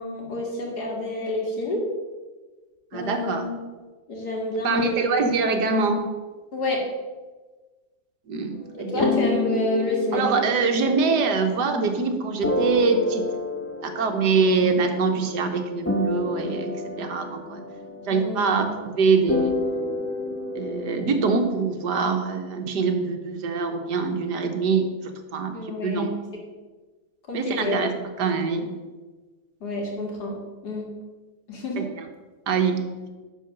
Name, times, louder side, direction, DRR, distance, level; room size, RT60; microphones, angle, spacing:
voice 1, 0.0-1.9 2.9-3.5 4.1-5.1 6.5-6.9 8.7-10.4 18.1-18.7 25.5-26.1 27.3-27.8 29.6-30.4 30.6-30.9 31.5-31.8, left 1 dB, 70° left, -1 dB, 2.7 m, -29 dB
voice 2, 2.9-3.4 4.6-6.1 8.3-9.1 10.1-13.3 13.8-17.6 18.0-19.5 20.5-24.9 25.3-26.1 27.3-27.9 28.2-28.8 31.8-31.9 32.5-33.1, right 4 dB, 75° right, 5 dB, 1.7 m, -24 dB
sound 1, 8.6-12.1 12.4-15.3 15.6-21.6, left 2 dB, 20° left, 0.4 m, -29 dB
10.5 x 4.7 x 6.5 m, 1.3 s
omnidirectional pair, 1.8 m